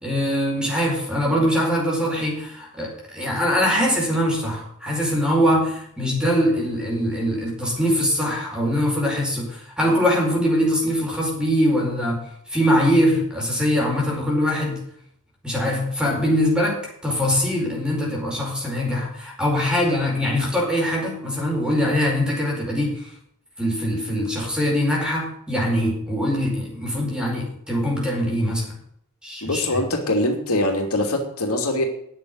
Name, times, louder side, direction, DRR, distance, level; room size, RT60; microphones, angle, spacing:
voice 1, 0.0-14.8 15.4-23.1 23.6-28.8 29.2-29.8, equal, 5° right, -2 dB, 4.9 m, -22 dB
voice 2, 29.4-31.8, left 1 dB, 85° left, 2 dB, 2.7 m, -23 dB
10.0 x 7.5 x 9.6 m, 0.70 s
head